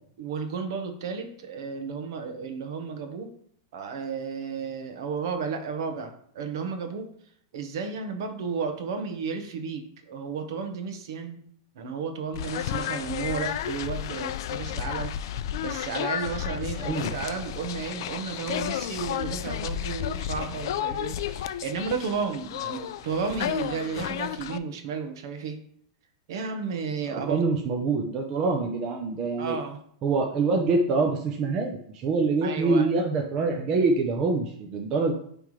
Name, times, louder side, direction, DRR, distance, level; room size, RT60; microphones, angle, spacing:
voice 1, 0.2-3.3 3.7-7.1 7.5-11.4 11.7-15.2 15.6-25.6 26.3-27.4 29.4-29.8 32.4-32.9, right 5 dB, 60° right, 5 dB, 1.2 m, -33 dB
sound 1, 12.3-24.6, left 11 dB, 60° left, 0.3 m, -32 dB
voice 2, 16.8-17.1 27.1-29.6 30.0-35.1, right 3 dB, 25° right, 2 dB, 0.7 m, -25 dB
9.4 x 3.5 x 3.2 m, 0.64 s
supercardioid pair, 165°, 3 cm